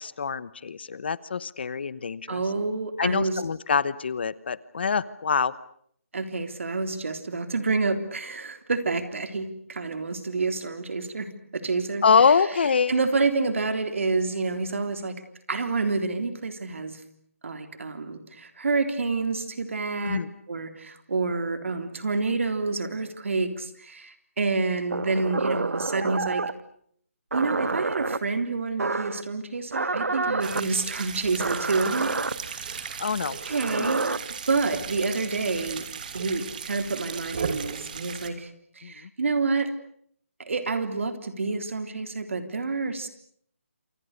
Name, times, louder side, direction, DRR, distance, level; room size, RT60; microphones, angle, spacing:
voice 1, 0.0-2.4 3.0-5.5 12.0-13.0 20.0-20.3 33.0-33.4 33.8-33.9 38.8-39.1, left 6 dB, 45° left, 19 dB, 1.0 m, -25 dB
voice 2, 2.3-3.4 6.1-12.0 12.9-15.1 15.5-17.0 17.4-20.2 20.5-26.4 27.3-32.2 32.5-35.9 36.1-38.5 38.8-39.7 40.4-43.1, right 3 dB, 60° right, 9 dB, 3.6 m, -28 dB
sound 1, 24.9-26.6 27.3-28.2 28.8-29.2 29.7-30.6 31.4-32.3 33.4-34.2, right 3 dB, 85° right, 1.5 m, -28 dB
sound 2, 30.4-38.3, right 6 dB, 35° right, 2.7 m, -36 dB
28.0 x 26.0 x 6.6 m, 0.64 s
hypercardioid pair, 165°, 8 cm